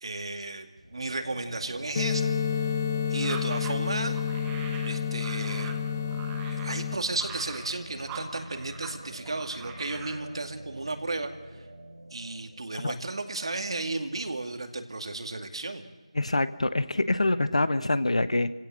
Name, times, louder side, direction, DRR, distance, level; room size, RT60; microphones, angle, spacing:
voice 1, 0.0-2.7 3.1-4.2 4.8-5.8 6.5-11.6 12.1-15.9, right 2 dB, 50° right, 6 dB, 2.3 m, -34 dB
sound 1, 0.8-14.4, right 1 dB, 85° right, 4.3 m, -45 dB
sound 2, 2.0-7.0, left 7 dB, 20° left, 0.8 m, -29 dB
sound 3, 3.1-9.0 9.2-10.2, right 6 dB, 10° right, 1.1 m, -43 dB
voice 2, 16.1-18.5, left 2 dB, 65° left, 13 dB, 1.2 m, -25 dB
29.5 x 17.0 x 7.7 m, 1.3 s
figure-of-eight pair, 170°, 4 cm